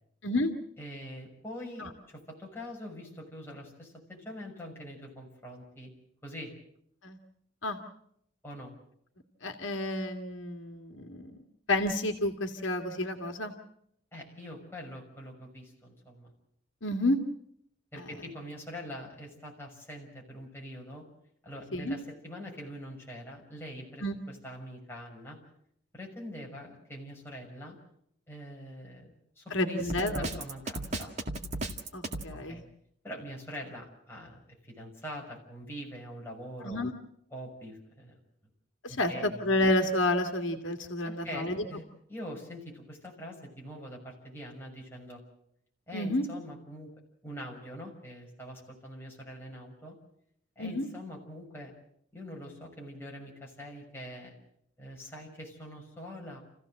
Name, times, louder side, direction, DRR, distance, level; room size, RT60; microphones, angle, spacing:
voice 1, 0.8-5.9 6.2-6.5 8.4-8.7 14.1-16.3 17.9-21.0 21.4-25.4 25.9-27.8 28.3-31.1 32.3-32.6 33.0-36.9 37.3-38.2 38.9-39.4 41.0-41.8 42.1-45.2 45.9-46.9 47.2-50.0 50.6-51.7 52.1-54.3 54.8-56.4, equal, 10° left, -2 dB, 6.1 m, -44 dB
voice 2, 9.4-11.4 11.7-13.5 16.8-17.2 18.0-18.1 21.7-22.0 24.0-24.2 29.5-30.3 31.9-32.6 36.6-36.9 38.8-41.6 45.9-46.2 50.6-50.9, left 1 dB, 70° left, 4 dB, 2.1 m, -30 dB
Drum kit, 29.9-32.3, right 2 dB, 35° right, 2.0 m, -34 dB
29.0 x 16.0 x 7.7 m, 0.73 s
head